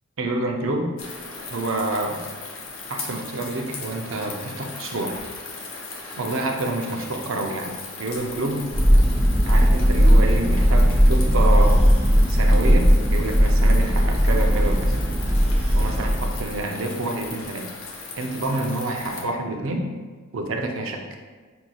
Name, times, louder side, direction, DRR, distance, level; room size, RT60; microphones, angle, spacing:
voice 1, 0.2-0.9 1.5-2.2 2.9-5.2 6.2-8.7 9.5-11.8 12.3-15.0 15.7-17.7 18.2-19.9 20.3-21.0, right 2 dB, 70° right, 3 dB, 0.5 m, -28 dB
sound 1, 1.0-19.2, left 3 dB, 80° left, 0.7 m, -38 dB
Thunder, 8.7-16.6, equal, 25° right, 0.6 m, -17 dB
5.9 x 2.7 x 2.3 m, 1.5 s
head